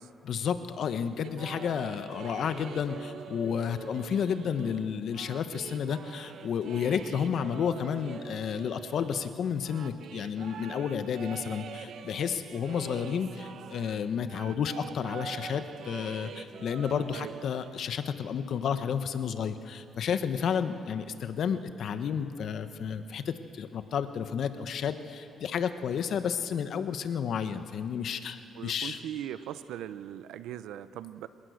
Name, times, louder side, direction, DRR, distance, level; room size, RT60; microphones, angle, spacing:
voice 1, 0.2-29.0, left 7 dB, 65° left, 10 dB, 1.1 m, -31 dB
sound 1, 1.2-14.0 14.3-17.7, right 7 dB, 65° right, 1.2 m, -44 dB
voice 2, 28.5-31.3, right 11 dB, 85° right, 14 dB, 0.7 m, -39 dB
27.5 x 17.5 x 6.5 m, 2.6 s
cardioid pair, 90°, 0 cm